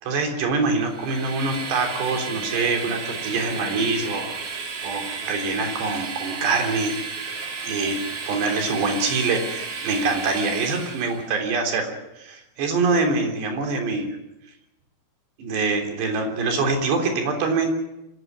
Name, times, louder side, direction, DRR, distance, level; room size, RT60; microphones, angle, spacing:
voice 1, 0.0-4.3 4.8-7.0 7.6-8.0 8.3-14.1 15.4-17.7, right 3 dB, 75° right, 4 dB, 5.6 m, -24 dB
Train, 0.8-11.3, right 5 dB, 40° right, 3.1 m, -33 dB
25.0 x 16.5 x 9.6 m, 0.90 s
omnidirectional pair, 5.0 m